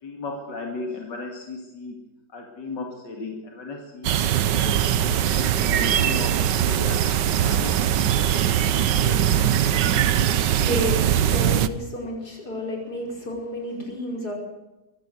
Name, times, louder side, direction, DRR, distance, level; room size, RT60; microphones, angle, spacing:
voice 1, 0.0-2.0 2.3-4.1 4.5-4.9 5.2-7.0 7.4-8.4 8.6-9.3, left 3 dB, 90° left, 1 dB, 3.0 m, -36 dB
sound 1, 4.0-11.7, right 10 dB, 80° right, 1.5 m, -21 dB
voice 2, 10.4-14.3, left 1 dB, 65° left, 0 dB, 5.7 m, -31 dB
23.0 x 14.5 x 7.9 m, 1.0 s
omnidirectional pair, 1.8 m